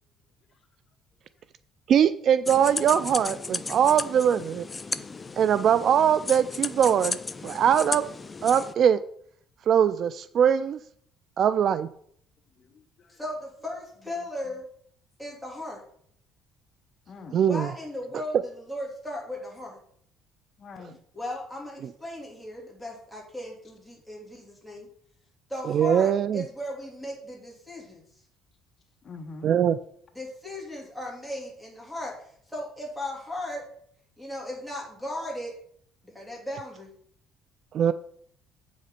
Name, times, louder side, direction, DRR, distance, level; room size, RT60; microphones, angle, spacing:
voice 1, 1.9-4.7 5.4-7.2 7.4-8.1 8.4-9.0 9.7-10.8 11.4-11.9 17.3-17.7 25.7-26.4 29.4-29.8 37.7-37.9, right 8 dB, 50° right, 14 dB, 0.4 m, -22 dB
sound 1, 2.4-8.7, left 4 dB, 20° left, 0.5 m, -35 dB
voice 2, 12.6-13.2 17.1-17.4 20.6-21.0 29.0-29.5, left 4 dB, 40° left, 6 dB, 1.0 m, -44 dB
voice 3, 13.1-14.6 15.2-15.8 17.5-19.8 21.1-24.9 25.5-28.1 30.1-32.2 32.5-33.7 34.2-35.5 36.0-36.9, left 1 dB, ahead, -2 dB, 3.3 m, -37 dB
7.9 x 6.2 x 5.8 m, 0.64 s
cardioid pair, 130°, 0 cm